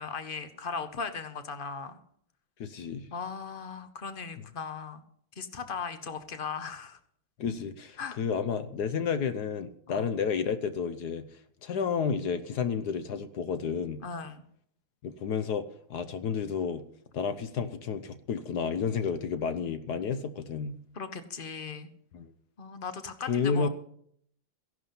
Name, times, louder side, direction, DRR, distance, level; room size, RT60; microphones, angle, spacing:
voice 1, 0.0-2.0 3.1-5.0 5.4-7.0 8.0-8.2 9.9-10.1 14.0-14.4 20.9-21.9 22.6-23.7, left 5 dB, 35° left, 10 dB, 0.9 m, -38 dB
voice 2, 2.6-3.1 7.4-11.2 11.6-14.0 15.0-16.8 17.1-20.7 22.1-22.3 23.3-23.7, left 6 dB, 60° left, 11 dB, 1.2 m, -31 dB
15.5 x 11.0 x 5.8 m, 0.65 s
omnidirectional pair, 2.4 m